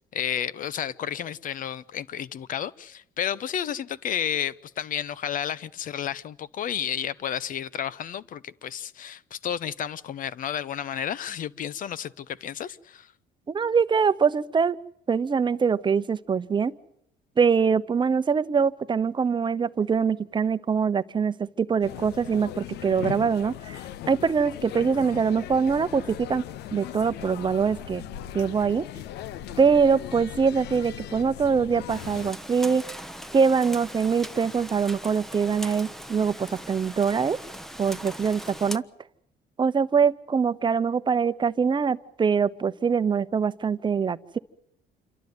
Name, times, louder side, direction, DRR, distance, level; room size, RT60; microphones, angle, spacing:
voice 1, 0.1-13.1, left 9 dB, 55° left, 0.8 m, -31 dB
voice 2, 13.5-14.8 15.1-16.7 17.4-23.8 24.1-26.4 26.7-28.0 28.3-28.9 29.6-32.8 33.3-37.4 37.8-38.8 39.6-44.4, right 6 dB, 30° right, 0.9 m, -23 dB
sound 1, 21.8-32.3, left 12 dB, 80° left, 0.8 m, -38 dB
Rain, 31.9-38.8, equal, ahead, 0.9 m, -40 dB
28.0 x 12.5 x 9.6 m
cardioid pair, 110°, 17 cm